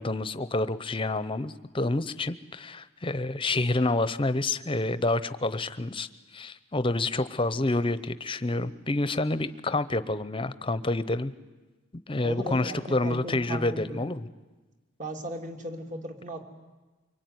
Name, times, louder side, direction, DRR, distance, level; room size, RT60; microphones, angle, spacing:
voice 1, 0.0-11.3 12.1-14.3, left 2 dB, 25° left, 14 dB, 0.9 m, -28 dB
voice 2, 12.2-14.0 15.0-16.4, right 1 dB, 40° right, 4 dB, 2.9 m, -36 dB
24.5 x 24.5 x 9.5 m, 1.2 s
head